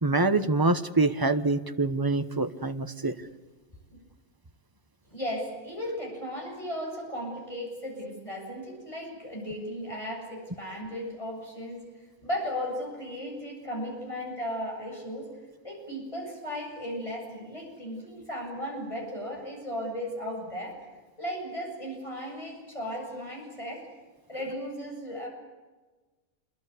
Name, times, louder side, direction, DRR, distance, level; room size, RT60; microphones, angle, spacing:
voice 1, 0.0-3.1, right 3 dB, 20° right, 9 dB, 1.1 m, -25 dB
voice 2, 5.1-11.9 12.2-15.3 15.6-20.8 21.2-23.9 24.3-25.3, equal, 25° left, 0 dB, 8.2 m, -36 dB
27.5 x 22.5 x 8.4 m, 1.3 s
omnidirectional pair, 1.4 m